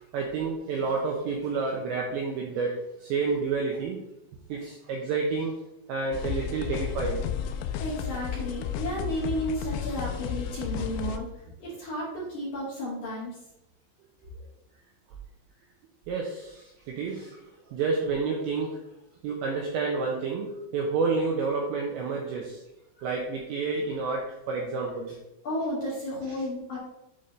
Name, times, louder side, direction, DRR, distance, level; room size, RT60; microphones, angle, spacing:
voice 1, 0.1-4.0 4.5-5.6 5.9-7.3 16.1-17.4 17.7-18.8 19.2-22.6 23.0-25.2, right 4 dB, 80° right, -1 dB, 2.6 m, -29 dB
sound 1, 6.1-11.2, left 9 dB, 80° left, 2.8 m, -32 dB
voice 2, 7.8-11.3 11.6-13.4 25.4-26.8, equal, 45° left, -8 dB, 2.9 m, -33 dB
11.0 x 4.2 x 3.3 m, 0.86 s
omnidirectional pair, 6.0 m